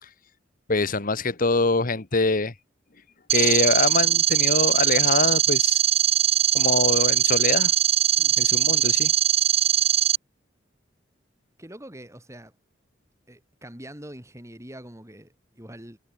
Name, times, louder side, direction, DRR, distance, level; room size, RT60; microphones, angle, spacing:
voice 1, 0.7-2.5 3.3-5.8 6.5-7.7 8.4-9.1, left 3 dB, 45° left, 1.4 m, -24 dB
sound 1, 3.3-10.2, right 10 dB, 35° right, 0.5 m, -21 dB
voice 2, 11.6-12.5 13.3-16.0, right 1 dB, 15° right, 7.5 m, -43 dB
head